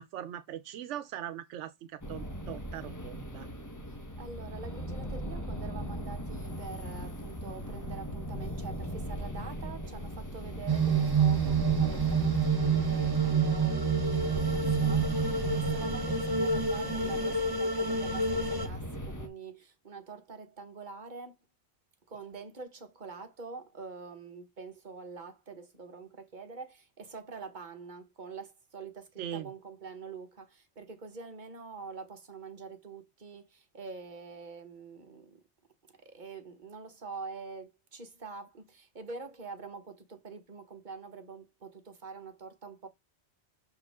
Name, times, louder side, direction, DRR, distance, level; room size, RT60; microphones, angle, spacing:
voice 1, 0.0-3.5 29.2-29.5, right 11 dB, 85° right, 0.9 m, -41 dB
sound 1, 2.0-19.3, equal, 15° left, 1.0 m, -39 dB
voice 2, 4.2-21.4 22.1-35.4 36.0-42.9, right 5 dB, 40° right, 1.4 m, -45 dB
sound 2, 10.7-18.7, right 4 dB, 20° right, 0.8 m, -28 dB
6.4 x 4.7 x 3.6 m
omnidirectional pair, 1.2 m